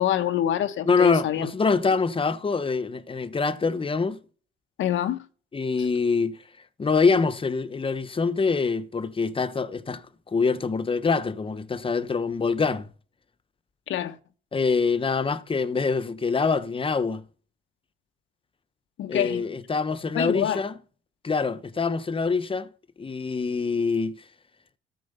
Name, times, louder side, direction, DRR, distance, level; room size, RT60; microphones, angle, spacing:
voice 1, 0.0-1.5 4.8-5.3 13.9-14.2 19.0-19.4 20.1-20.6, left 11 dB, 75° left, 1.0 m, -26 dB
voice 2, 0.9-4.2 5.5-6.4 6.8-12.9 14.5-17.3 19.1-20.7 21.2-22.7 23.0-24.2, left 4 dB, 25° left, 1.0 m, -25 dB
13.5 x 5.0 x 6.7 m
cardioid pair, 90°, 20 cm